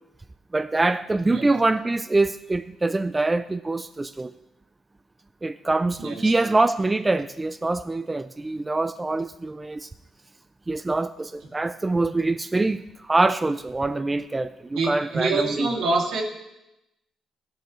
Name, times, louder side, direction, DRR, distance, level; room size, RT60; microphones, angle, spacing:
voice 1, 0.5-4.3 5.4-9.9 10.7-15.7, right 2 dB, 20° right, 12 dB, 0.4 m, -24 dB
voice 2, 6.0-6.5 14.7-16.2, right 3 dB, 80° right, -2 dB, 2.5 m, -26 dB
14.0 x 11.5 x 3.1 m, 0.91 s
cardioid pair, 90°, 0 cm